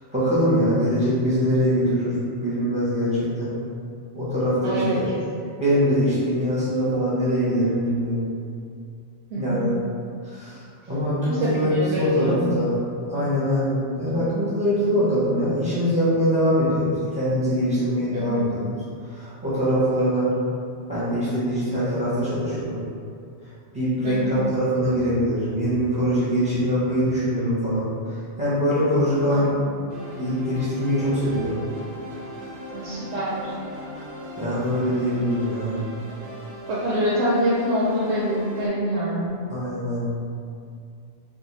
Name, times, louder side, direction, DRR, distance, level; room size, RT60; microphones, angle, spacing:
voice 1, 0.1-2.1 2.4-3.5 4.1-5.1 5.6-8.2 9.4-9.7 10.2-10.6 10.9-12.8 13.1-18.8 19.1-20.3 20.9-22.8 23.7-27.9 28.4-29.5 29.9-31.6 34.0-34.1 34.4-35.8 39.5-40.2, equal, 10° right, -11 dB, 0.6 m, -23 dB
voice 2, 4.6-5.1 9.3-9.7 11.2-12.7 18.1-18.5 24.0-24.3 29.2-29.5 32.7-33.5 36.7-39.3, equal, 85° right, -7 dB, 0.9 m, -25 dB
sound 1, 29.9-38.7, equal, 60° right, 0.6 m, -38 dB
2.5 x 2.1 x 3.0 m, 2.3 s
omnidirectional pair, 1.2 m